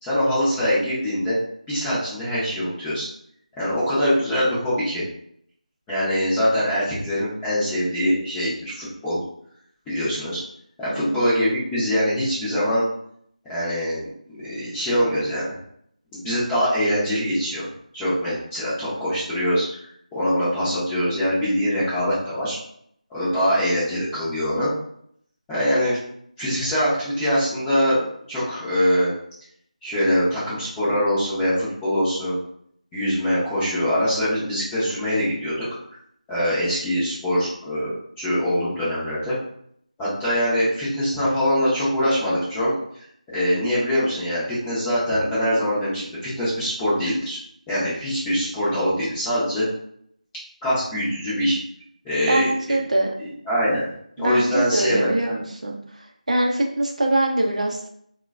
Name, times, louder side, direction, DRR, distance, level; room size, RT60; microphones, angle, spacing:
voice 1, 0.0-1.4 1.7-3.1 3.6-5.0 5.9-9.2 9.9-10.4 10.8-12.9 13.5-15.5 16.1-17.7 17.9-19.8 20.1-22.6 23.1-24.7 25.5-26.0 26.4-28.0 28.3-29.1 29.8-32.4 32.9-35.7 36.3-39.4 40.0-42.7 43.3-47.4 47.7-49.7 50.6-51.6 52.0-52.8 53.2-53.8 54.2-55.4, equal, 5° left, -11 dB, 0.5 m, -23 dB
voice 2, 10.9-11.3 52.3-53.1 54.2-55.8 56.3-57.9, right 1 dB, 60° right, 2 dB, 0.5 m, -23 dB
3.0 x 2.1 x 2.3 m, 0.68 s
figure-of-eight pair, 170°, 4 cm